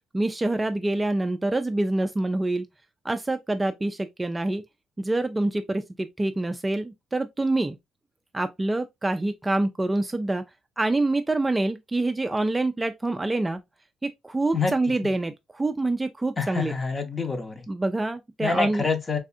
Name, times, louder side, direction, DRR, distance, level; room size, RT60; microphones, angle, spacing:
voice 1, 0.1-2.7 3.0-4.6 5.0-7.8 8.3-10.4 10.8-13.6 14.0-16.7 17.7-18.9, right 2 dB, 15° right, 0.3 m, -26 dB
voice 2, 16.4-17.7 18.4-19.2, left 4 dB, 35° left, 0.8 m, -27 dB
3.4 x 2.3 x 2.6 m
cardioid pair, 90°, 0 cm